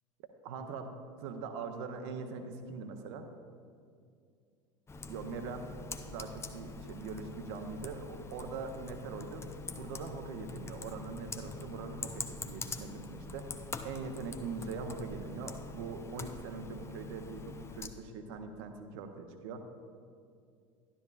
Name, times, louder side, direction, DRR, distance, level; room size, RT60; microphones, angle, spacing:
voice 1, 0.4-3.3 5.1-9.5 9.7-13.5 13.8-19.6, right 4 dB, 55° right, 6 dB, 0.9 m, -42 dB
Computer keyboard, 4.9-17.9, left 3 dB, 15° left, 0.5 m, -44 dB
12.5 x 11.5 x 2.4 m, 2.3 s
figure-of-eight pair, 75°, 17 cm